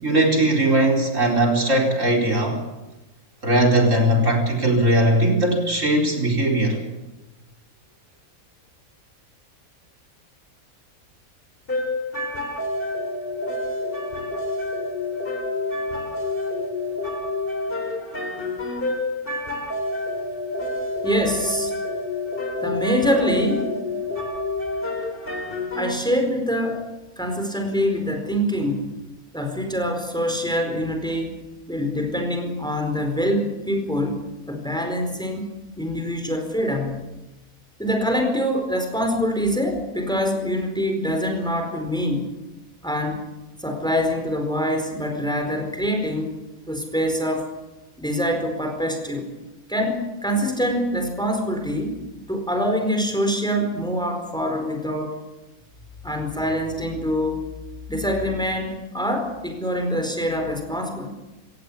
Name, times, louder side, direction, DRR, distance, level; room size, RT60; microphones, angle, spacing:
voice 1, 0.0-2.6 3.4-6.8, right 1 dB, 60° right, 1 dB, 4.8 m, -19 dB
sound 1, 11.7-25.9, left 2 dB, 40° left, 4.2 m, -28 dB
voice 2, 21.0-21.7 22.6-23.7 25.8-26.9 27.2-29.0 29.3-31.4 31.7-35.4 35.8-37.0 37.8-42.3 42.8-43.3 43.6-46.4 46.7-47.5 48.0-49.3 49.7-51.9 52.3-55.2 56.0-57.4 57.9-61.1, equal, 5° left, 5 dB, 4.5 m, -24 dB
26.0 x 17.5 x 8.5 m, 1.0 s
omnidirectional pair, 1.5 m